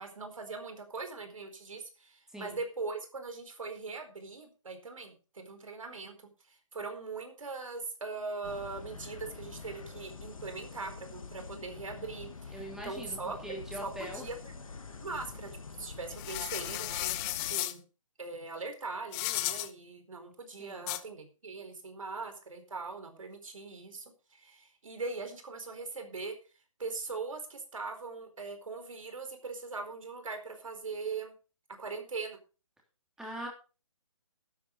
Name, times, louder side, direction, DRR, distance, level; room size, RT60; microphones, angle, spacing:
voice 1, 0.0-6.2 6.5-13.4 13.8-14.6 15.0-15.5 15.8-17.1 17.4-17.8 18.2-24.0 24.3-26.3 26.8-31.3 31.8-32.4, right 4 dB, 70° right, 7 dB, 4.5 m, -41 dB
sound 1, 8.4-17.6, left 4 dB, 75° left, 2.3 m, -46 dB
voice 2, 12.5-13.2 13.4-14.3 20.6-20.9 33.2-33.5, right 1 dB, 5° right, 0 dB, 3.4 m, -41 dB
sound 2, 16.1-17.7 19.1-19.7 20.9-21.0, left 18 dB, 15° left, 0.6 m, -34 dB
12.0 x 10.5 x 4.8 m, 0.33 s
hypercardioid pair, 150°, 18 cm